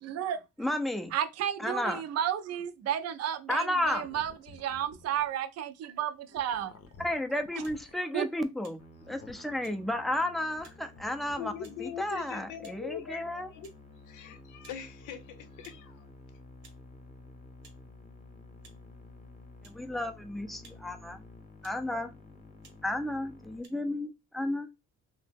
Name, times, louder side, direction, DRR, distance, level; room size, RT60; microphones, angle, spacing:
voice 1, 0.0-0.4 1.1-6.7 8.1-8.3, right 10 dB, 55° right, 0.5 m, -32 dB
voice 2, 0.6-1.1 1.6-2.0 3.5-4.0 7.0-8.8 9.1-11.5 11.8-13.5 19.7-21.2 21.6-22.1 22.8-24.7, left 1 dB, ahead, 0.4 m, -32 dB
sound 1, 3.8-5.3 6.3-8.0 8.9-9.6 10.4-11.4, left 5 dB, 50° left, 0.6 m, -53 dB
sound 2, 7.6-7.8 8.6-8.8 9.6-9.8 10.6-10.8 11.6-11.8 12.6-12.8 13.6-13.8 14.6-14.8 15.6-15.8 16.6-16.8 17.6-17.8 18.6-18.8 19.6-19.8 20.6-20.8 21.6-21.8 22.6-22.8 23.6-23.7, right 5 dB, 70° right, 0.9 m, -57 dB
Musical instrument, 8.8-23.6, left 2 dB, 25° left, 0.8 m, -52 dB
voice 3, 11.4-13.7 14.1-16.1, left 8 dB, 90° left, 0.6 m, -42 dB
2.7 x 2.0 x 3.3 m
cardioid pair, 90°, 30 cm